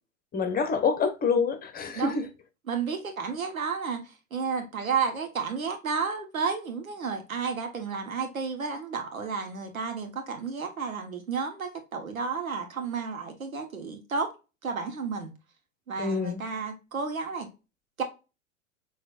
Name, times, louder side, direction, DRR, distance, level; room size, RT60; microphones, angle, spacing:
voice 1, 0.3-2.3 16.0-16.4, left 5 dB, 20° left, 1.1 m, -26 dB
voice 2, 2.7-4.0 4.3-14.3 14.6-15.3 15.9-17.5 18.0-18.1, right 5 dB, 85° right, 1.5 m, -32 dB
6.1 x 3.2 x 2.5 m
hypercardioid pair, 95°, 40 cm